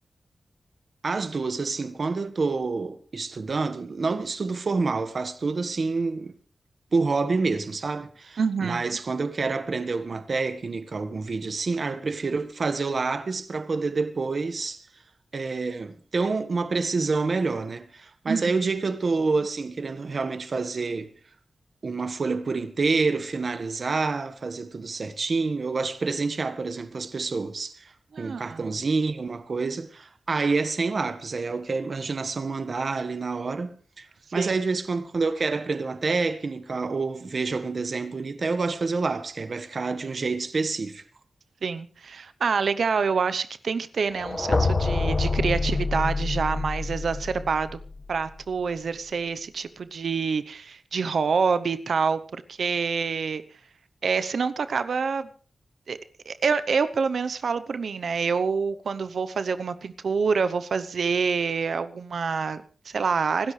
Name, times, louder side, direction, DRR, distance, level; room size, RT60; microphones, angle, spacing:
voice 1, 1.0-6.3 6.9-14.9 15.3-21.1 21.8-41.0, right 4 dB, 55° right, 1.5 m, -28 dB
voice 2, 8.4-8.8 18.3-18.5 28.1-28.6 34.3-34.5 41.6-47.7 48.1-53.4 54.0-55.3 55.9-56.0 56.3-63.5, right 5 dB, 80° right, 0.9 m, -27 dB
sound 1, 44.2-48.2, left 3 dB, 35° left, 1.5 m, -26 dB
26.0 x 13.0 x 3.3 m
wide cardioid pair, 75°, 0 cm